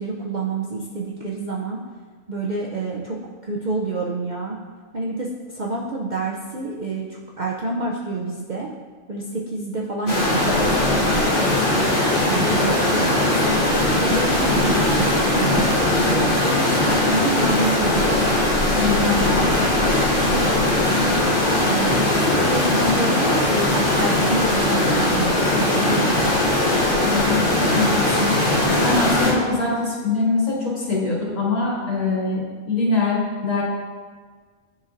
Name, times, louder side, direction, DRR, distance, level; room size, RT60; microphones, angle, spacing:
voice 1, 0.0-1.8 2.3-3.2 3.4-4.6 4.9-8.7 9.1-13.5 13.9-15.6 16.0-18.3 19.0-19.5 21.6-26.3, right 3 dB, 55° right, -3 dB, 0.5 m, -28 dB
sound 1, 10.1-29.3, left 1 dB, 40° left, 1.4 m, -19 dB
voice 2, 18.7-19.2 27.0-33.6, left 3 dB, 70° left, -6 dB, 2.1 m, -24 dB
10.0 x 4.2 x 2.5 m, 1.5 s
omnidirectional pair, 1.4 m